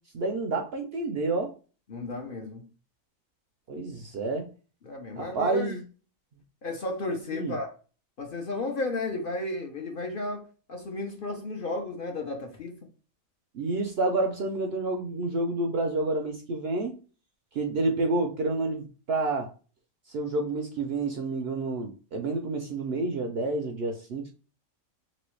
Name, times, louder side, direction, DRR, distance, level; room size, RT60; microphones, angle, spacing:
voice 1, 0.1-1.5 3.7-4.5 5.2-5.8 7.3-7.5 13.5-16.9 17.5-19.5 20.1-24.3, right 2 dB, 60° right, 0.7 m, -29 dB
voice 2, 1.9-2.7 4.8-5.8 6.6-7.7 8.2-12.8, left 2 dB, 50° left, 0.8 m, -33 dB
3.0 x 2.9 x 3.1 m
omnidirectional pair, 1.5 m